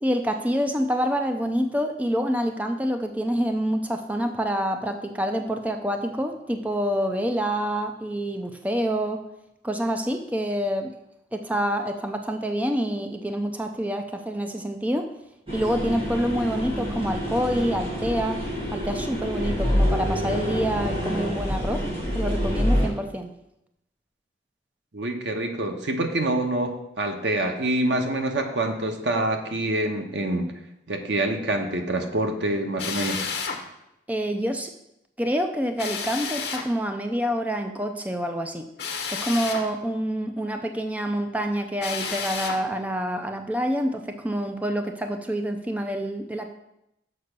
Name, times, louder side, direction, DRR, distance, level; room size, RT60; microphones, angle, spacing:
voice 1, 0.0-9.2 9.6-10.9 11.3-15.1 15.5-18.4 18.7-21.9 22.1-23.3 34.1-34.7 35.2-38.7 39.1-46.5, equal, 10° right, 5 dB, 0.4 m, -27 dB
sound 1, 15.5-22.9, equal, 35° right, 2.0 m, -27 dB
voice 2, 24.9-30.5 30.9-33.3, right 1 dB, 85° right, 4 dB, 1.0 m, -26 dB
Drill, 32.8-33.6 35.8-36.7 38.8-39.7 41.8-42.6, left 6 dB, 70° left, 1.1 m, -31 dB
6.8 x 4.8 x 6.6 m, 0.85 s
head